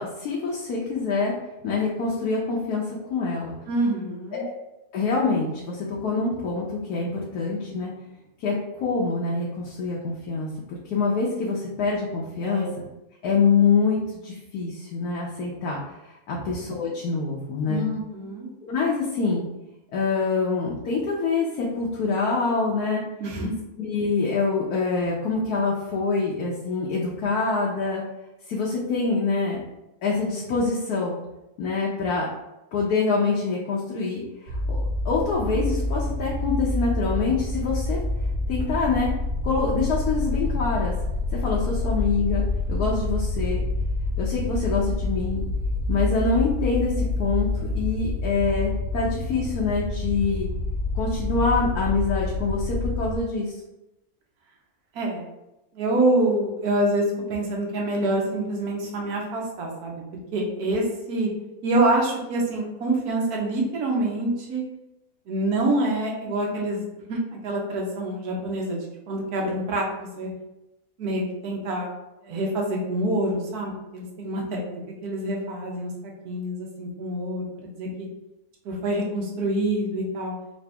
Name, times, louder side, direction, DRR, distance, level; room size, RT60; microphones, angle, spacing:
voice 1, 0.0-1.3 1.6-3.5 4.3-4.5 4.9-7.9 8.4-12.7 13.2-17.8 18.6-19.4 19.9-23.0 23.8-28.0 28.5-29.6 30.0-31.2 31.6-32.3 32.7-34.8 35.0-38.0 38.5-39.1 39.4-40.9 41.3-43.6 44.2-45.4 45.9-47.5 47.7-50.5 50.9-53.6, left 4 dB, 90° left, -3 dB, 1.2 m, -25 dB
voice 2, 3.7-4.4 12.4-12.7 16.3-16.5 17.7-18.5 23.2-23.5 54.9-55.2 55.7-60.0 60.3-61.3 61.6-64.6 65.3-66.8 67.1-70.3 71.0-71.9 72.2-75.9 76.2-77.4 77.8-78.1 78.6-80.3, right 1 dB, 90° right, 0 dB, 1.4 m, -26 dB
sound 1, 34.5-53.2, left 2 dB, 70° right, 0.9 m, -27 dB
3.8 x 2.6 x 3.4 m, 0.94 s
omnidirectional pair, 1.6 m